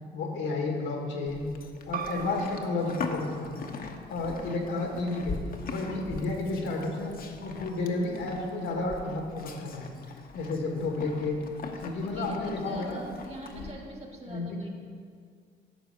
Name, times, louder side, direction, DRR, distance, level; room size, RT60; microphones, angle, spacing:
voice 1, 0.1-1.5 1.9-3.7 4.1-5.4 5.7-7.1 7.4-9.9 10.3-11.4 11.8-13.0 13.5-13.6 14.3-14.6, left 2 dB, 85° left, 1 dB, 1.8 m, -31 dB
Livestock farm animals working animals, 1.3-13.7, left 4 dB, 45° left, 0.9 m, -42 dB
sound 1, 1.9-7.1, right 8 dB, 45° right, 0.5 m, -44 dB
voice 2, 12.1-14.7, right 1 dB, 30° right, 2 dB, 1.6 m, -44 dB
11.5 x 4.2 x 6.7 m, 2.2 s
cardioid pair, 90°, 20 cm